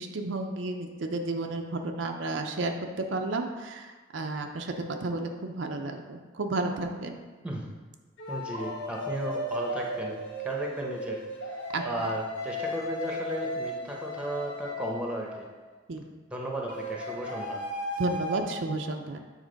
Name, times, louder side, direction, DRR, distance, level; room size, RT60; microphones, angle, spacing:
voice 1, 0.0-7.2 11.7-11.8 15.9-16.0 18.0-19.2, right 2 dB, 75° right, 4 dB, 0.6 m, -32 dB
sound 1, 6.7-6.8 8.2-15.6 16.7-18.4, equal, 75° left, 1.1 m, -35 dB
voice 2, 8.3-10.2 10.4-11.6 11.8-15.5 16.3-17.6, right 1 dB, 5° right, -1 dB, 0.9 m, -35 dB
7.4 x 3.6 x 5.1 m, 1.3 s
head